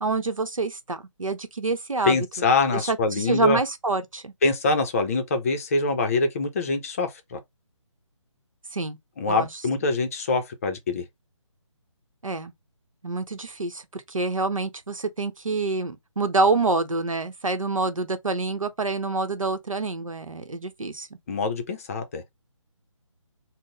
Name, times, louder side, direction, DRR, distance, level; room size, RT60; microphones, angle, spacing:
voice 1, 0.0-2.2 2.7-4.3 8.7-9.0 9.3-9.5 12.2-12.5 13.0-21.1, right 3 dB, 90° right, 0.8 m, -27 dB
voice 2, 2.0-3.6 4.4-7.4 9.2-11.0 21.3-22.2, left 3 dB, 25° left, 0.5 m, -24 dB
3.7 x 2.1 x 3.9 m
figure-of-eight pair, 150°, 17 cm